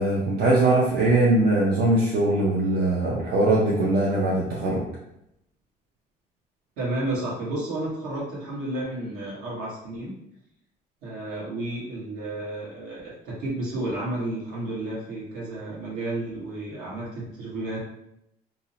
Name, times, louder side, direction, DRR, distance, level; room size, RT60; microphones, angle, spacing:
voice 1, 0.0-4.8, right 2 dB, 70° right, -4 dB, 0.5 m, -21 dB
voice 2, 6.8-10.1 11.0-17.8, right 2 dB, 90° right, -6 dB, 1.2 m, -32 dB
2.6 x 2.0 x 2.7 m, 0.80 s
cardioid pair, 110°, 17 cm